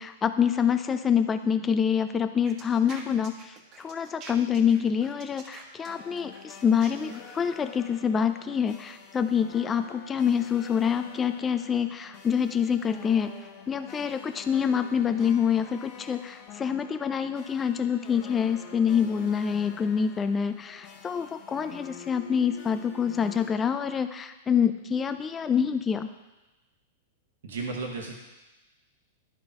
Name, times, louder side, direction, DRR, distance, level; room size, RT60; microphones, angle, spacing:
voice 1, 0.0-13.3 13.7-26.1, left 7 dB, 20° left, 10 dB, 0.5 m, -26 dB
sound 1, 2.4-7.5, right 4 dB, 45° right, 1.3 m, -47 dB
sound 2, 5.8-23.5, left 6 dB, 50° left, 0.9 m, -47 dB
voice 2, 27.4-28.2, right 3 dB, 75° right, 1 dB, 1.2 m, -33 dB
11.0 x 4.5 x 3.7 m, 1.1 s
hypercardioid pair, 115°, 0 cm